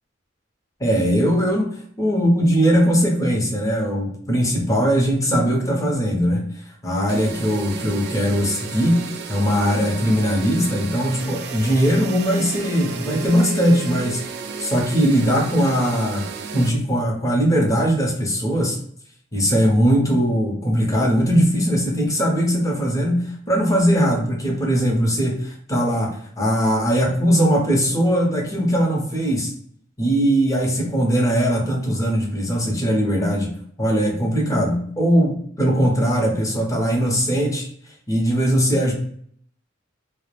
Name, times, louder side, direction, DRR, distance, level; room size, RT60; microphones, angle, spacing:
voice 1, 0.8-6.4 6.8-14.2 14.6-16.3 16.5-18.8 19.3-29.5 30.0-33.5 33.8-37.6 38.1-38.9, equal, 15° left, -1 dB, 0.6 m, -20 dB
sound 1, 7.1-16.7, right 5 dB, 55° right, 0.3 m, -33 dB
2.3 x 2.0 x 3.0 m, 0.62 s
head